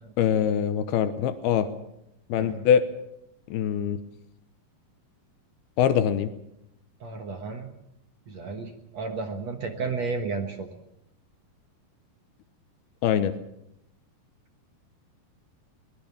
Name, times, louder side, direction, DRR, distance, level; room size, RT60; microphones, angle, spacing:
voice 1, 0.2-1.7 2.3-2.8 3.5-4.0 5.8-6.3 13.0-13.3, left 9 dB, 75° left, 10 dB, 2.8 m, -23 dB
voice 2, 7.0-7.7 8.3-10.7, right 4 dB, 60° right, 5 dB, 2.0 m, -33 dB
23.0 x 19.5 x 7.2 m, 0.82 s
omnidirectional pair, 4.7 m